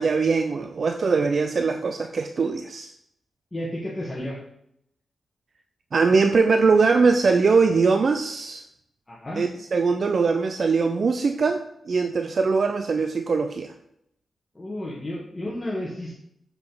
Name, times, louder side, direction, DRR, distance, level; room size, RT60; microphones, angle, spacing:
voice 1, 0.0-2.9 5.9-8.6 9.4-13.7, right 4 dB, 55° right, 6 dB, 0.5 m, -21 dB
voice 2, 3.5-4.4 9.1-9.4 14.5-16.2, left 1 dB, 20° left, -6 dB, 1.7 m, -32 dB
7.0 x 5.5 x 3.9 m, 0.76 s
cardioid pair, 80°, 0 cm